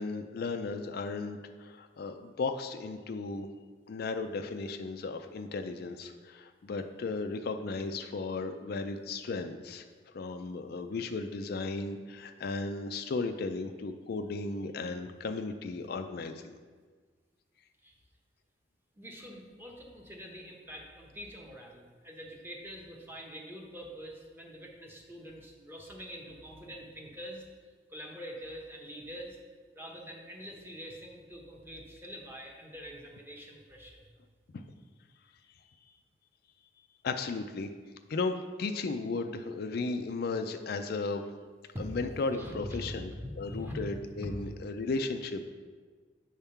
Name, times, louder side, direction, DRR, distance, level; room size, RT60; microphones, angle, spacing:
voice 1, 0.0-3.5 3.9-9.8 10.1-16.5 37.0-37.7 38.1-41.2 41.8-43.1 43.4-45.5, left 3 dB, 60° left, 7 dB, 0.4 m, -35 dB
voice 2, 18.9-27.4 27.9-29.4 29.7-34.1 41.7-42.0 42.3-43.8 44.1-44.3, equal, 10° right, -1 dB, 0.9 m, -44 dB
7.9 x 3.6 x 5.6 m, 1.5 s
head